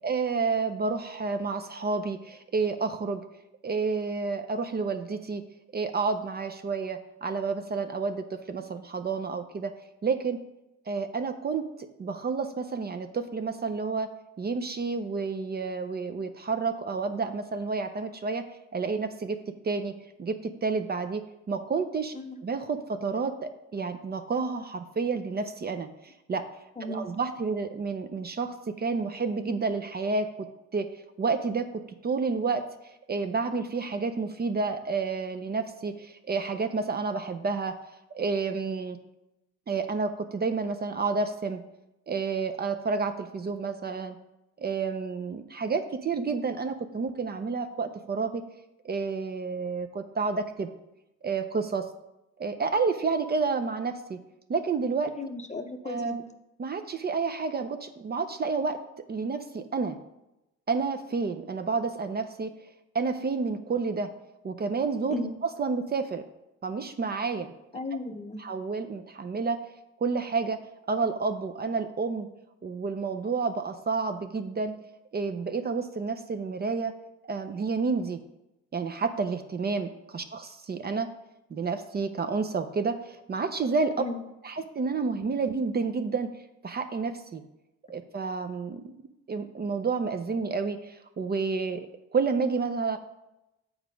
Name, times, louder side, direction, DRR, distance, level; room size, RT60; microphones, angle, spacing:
voice 1, 0.0-3.2 3.6-5.4 5.7-9.7 10.0-10.4 10.9-14.1 14.4-18.4 18.7-19.4 19.6-19.9 20.2-22.1 22.4-26.4 26.9-30.5 30.7-30.9 31.2-32.6 33.1-37.8 38.1-39.0 39.7-41.6 42.1-44.2 44.6-48.4 48.8-50.7 51.2-51.9 52.4-54.2 54.5-55.1 55.9-56.2 56.6-58.8 59.1-60.0 60.7-62.5 62.9-64.1 64.4-66.2 66.6-67.5 68.4-69.6 70.0-70.6 70.9-72.3 72.6-74.7 75.1-76.9 77.3-78.2 78.7-81.1 81.5-83.9 84.4-86.3 86.6-87.4 87.9-88.9 89.3-91.9 92.1-93.0, right 4 dB, 35° right, 8 dB, 0.5 m, -30 dB
voice 2, 22.1-22.4 26.8-27.1 55.2-56.2 65.1-65.3 67.7-68.4 84.0-84.2, left 3 dB, 25° left, 7 dB, 0.7 m, -36 dB
7.2 x 4.7 x 5.0 m, 0.93 s
cardioid pair, 90°, 30 cm